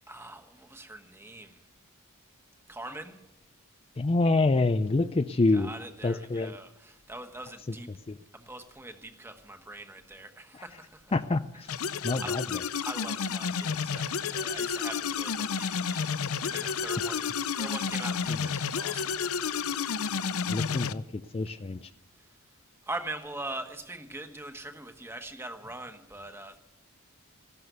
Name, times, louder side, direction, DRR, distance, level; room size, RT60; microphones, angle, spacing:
voice 1, 0.1-1.6 2.7-3.2 5.5-7.9 8.3-11.2 11.5-12.5 12.8-16.1 16.4-19.3 20.0-20.3 22.9-26.6, right 2 dB, 10° right, 7 dB, 1.3 m, -42 dB
voice 2, 4.0-5.7 6.0-6.5 7.7-7.8 8.1-8.2 10.5-10.7 11.1-11.7 12.0-12.6 17.0-17.1 18.3-18.5 20.5-21.9, left 2 dB, 25° left, 10 dB, 0.4 m, -27 dB
sound 1, 11.7-20.9, left 6 dB, 70° left, 0.6 m, -31 dB
16.0 x 12.5 x 6.9 m, 0.96 s
head